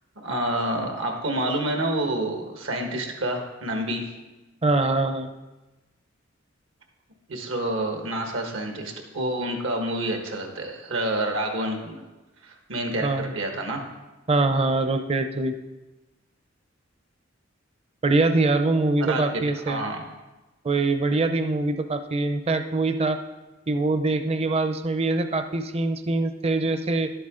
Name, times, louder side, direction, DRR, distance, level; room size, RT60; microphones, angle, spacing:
voice 1, 0.2-4.1 7.3-12.0 12.4-13.8 19.1-19.2 19.7-20.0, right 1 dB, 80° right, 3 dB, 1.4 m, -28 dB
voice 2, 4.6-5.3 13.0-13.3 14.3-15.6 18.0-19.8 20.6-23.2 23.7-27.1, right 2 dB, 30° right, 8 dB, 0.5 m, -23 dB
11.5 x 7.8 x 3.7 m, 1.1 s
head